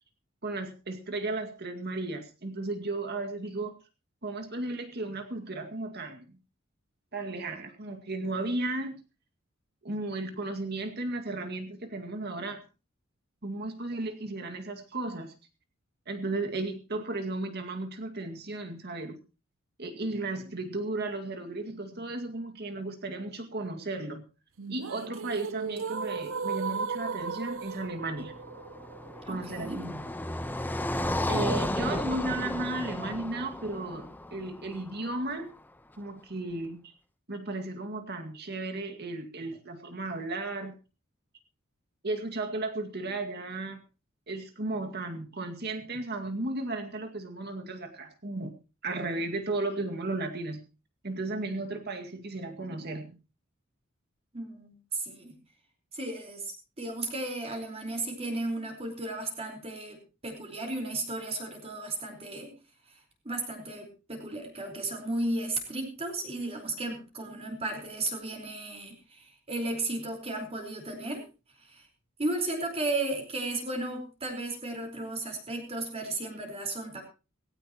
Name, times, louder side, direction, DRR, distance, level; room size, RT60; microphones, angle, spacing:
voice 1, 0.4-3.8 4.2-6.4 7.1-9.0 9.8-12.6 13.4-15.3 16.1-19.2 19.8-24.2 24.7-28.3 29.3-30.0 31.3-35.5 36.0-36.8 37.3-40.7 42.0-43.8 44.3-48.5 48.8-50.6 51.0-53.2, right 2 dB, 55° right, 5 dB, 2.2 m, -34 dB
sound 1, 24.6-30.6, right 5 dB, 80° right, 0.7 m, -36 dB
Car passing by, 28.1-35.3, left 1 dB, 10° left, 0.9 m, -33 dB
voice 2, 29.1-29.8 54.3-55.3 55.9-62.5 62.9-63.0 63.2-71.2 71.6-71.9 72.2-77.0, right 2 dB, 30° right, 2 dB, 4.6 m, -34 dB
18.0 x 17.0 x 3.0 m, 0.32 s
head